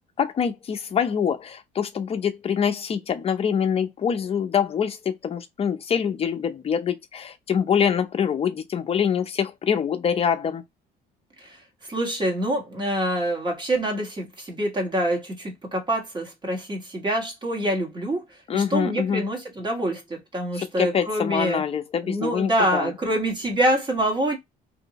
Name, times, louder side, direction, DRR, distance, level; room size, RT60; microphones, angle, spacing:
voice 1, 0.2-10.6 18.5-19.2 20.6-22.9, left 7 dB, 35° left, 0.6 m, -25 dB
voice 2, 11.9-18.2 18.5-21.6 22.0-24.4, right 1 dB, 25° right, 1.4 m, -26 dB
2.7 x 2.7 x 2.9 m
cardioid pair, 110°, 17 cm